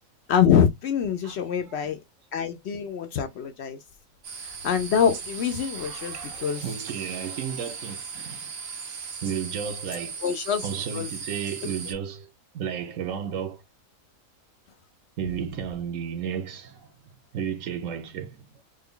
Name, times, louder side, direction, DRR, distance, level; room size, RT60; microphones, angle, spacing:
voice 1, 0.3-2.0 2.3-3.8 4.4-6.6 10.2-10.6 10.9-11.1, left 8 dB, 65° left, 0.7 m, -25 dB
voice 2, 1.3-1.8 5.5-8.5 9.2-10.3 10.6-13.6 15.2-16.9 17.3-18.6, right 8 dB, 75° right, 1.0 m, -33 dB
sound 1, 4.2-11.9, right 5 dB, 90° right, 1.3 m, -38 dB
3.3 x 2.2 x 3.6 m
omnidirectional pair, 1.4 m